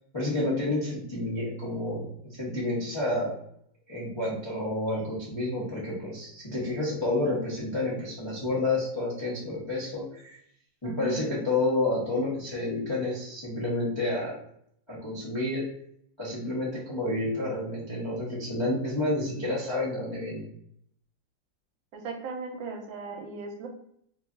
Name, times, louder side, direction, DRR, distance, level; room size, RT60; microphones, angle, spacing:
voice 1, 0.1-3.3 3.9-10.4 10.8-14.3 14.9-15.6 16.2-20.5, left 2 dB, 45° left, -7 dB, 0.3 m, -30 dB
voice 2, 10.8-11.3 21.9-23.7, right 4 dB, 80° right, 3 dB, 1.4 m, -37 dB
3.3 x 2.3 x 3.6 m, 0.70 s
omnidirectional pair, 2.1 m